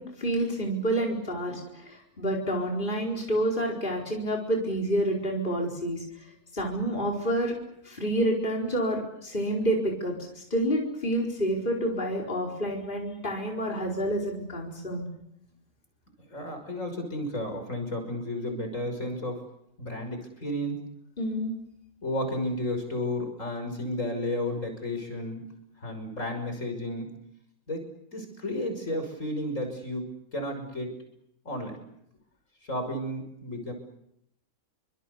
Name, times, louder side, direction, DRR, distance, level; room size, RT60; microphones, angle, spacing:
voice 1, 0.0-6.0 6.5-7.5 7.8-15.1 21.2-21.5, right 1 dB, 35° left, -1 dB, 4.9 m, -28 dB
voice 2, 16.3-19.4 19.8-20.8 22.0-25.4 25.8-27.1 27.7-27.9 28.1-30.9 31.4-31.8 32.7-33.7, left 1 dB, 65° left, 5 dB, 6.6 m, -32 dB
29.5 x 25.0 x 7.1 m, 0.77 s
omnidirectional pair, 1.5 m